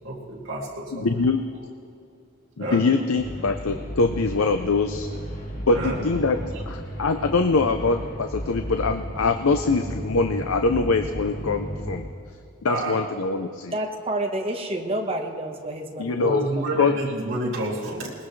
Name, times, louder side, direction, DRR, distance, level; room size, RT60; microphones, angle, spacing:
voice 1, 0.0-1.3 2.6-3.1 5.7-6.0 12.7-13.0 16.1-18.1, right 1 dB, 60° right, -6 dB, 2.6 m, -29 dB
voice 2, 0.9-1.4 2.6-5.1 5.7-6.4 6.7-12.0 12.6-13.7 16.0-16.5 16.8-16.9, left 3 dB, 90° left, 7 dB, 0.7 m, -23 dB
sound 1, 3.2-12.0, equal, 40° left, 2.0 m, -34 dB
voice 3, 13.7-16.7, right 1 dB, 25° right, 2 dB, 1.3 m, -29 dB
21.0 x 20.0 x 3.3 m, 2.5 s
head